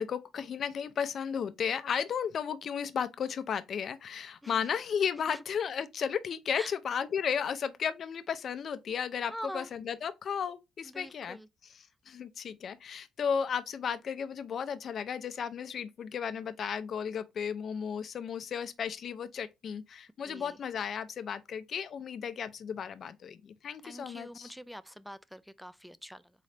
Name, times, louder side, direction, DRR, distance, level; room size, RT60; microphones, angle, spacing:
voice 1, 0.0-11.4 11.6-24.5, left 7 dB, 55° left, 0.5 m, -34 dB
voice 2, 9.3-9.7 10.8-11.5 20.3-20.6 23.8-26.3, equal, ahead, 0.3 m, -44 dB
4.0 x 3.8 x 3.2 m
cardioid pair, 90°, 0 cm